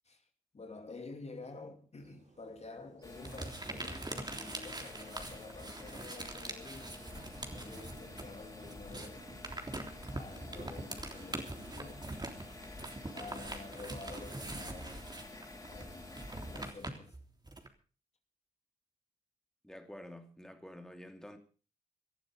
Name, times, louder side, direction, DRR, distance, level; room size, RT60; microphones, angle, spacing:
voice 1, 0.5-7.0 7.5-9.3 10.1-12.2 13.1-15.1 15.7-17.2, left 3 dB, 45° left, 2.6 m, -49 dB
sound 1, 2.0-11.2, right 3 dB, 55° right, 3.9 m, -62 dB
sound 2, 3.0-16.7, left 2 dB, 25° left, 5.9 m, -50 dB
sound 3, 3.2-8.3 8.6-17.7, right 2 dB, 25° right, 3.5 m, -43 dB
voice 2, 19.6-21.4, left 1 dB, 5° left, 2.9 m, -49 dB
19.0 x 11.5 x 5.2 m
supercardioid pair, 45°, 15 cm